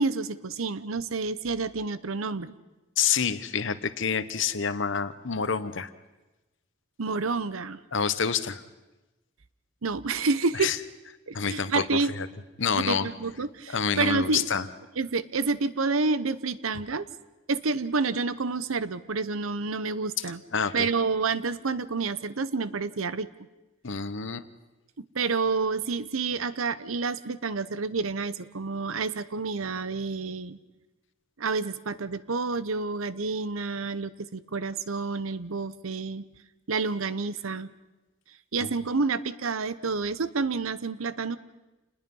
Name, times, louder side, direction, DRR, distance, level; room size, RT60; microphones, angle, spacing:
voice 1, 0.0-2.6 7.0-7.8 9.8-10.7 11.3-12.1 12.8-14.5 15.0-17.1 17.5-20.4 20.7-23.3 25.1-30.6 31.4-36.2 36.7-37.7 38.5-41.4, right 4 dB, 80° right, 16 dB, 0.9 m, -29 dB
voice 2, 3.0-5.9 7.9-8.6 10.5-10.8 11.3-12.3 12.6-13.1 13.7-14.7 20.5-20.9 23.8-24.5 38.6-38.7, left 6 dB, 60° left, 13 dB, 1.0 m, -28 dB
28.5 x 20.0 x 5.5 m, 1.1 s
head